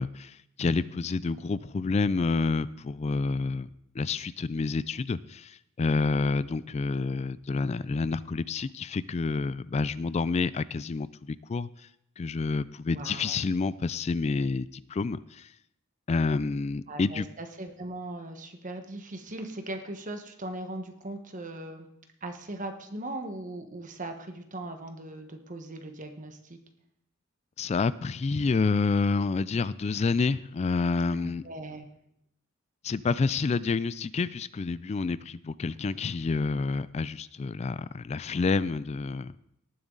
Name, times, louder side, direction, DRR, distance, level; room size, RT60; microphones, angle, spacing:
voice 1, 0.0-3.7 4.0-11.7 12.2-15.5 16.1-17.3 27.6-31.4 32.8-39.3, left 4 dB, 30° left, 17 dB, 0.3 m, -28 dB
voice 2, 12.9-13.4 16.9-21.9 22.2-26.6 31.2-31.9, right 2 dB, 40° right, 6 dB, 1.3 m, -39 dB
19.0 x 7.3 x 3.9 m, 0.76 s
head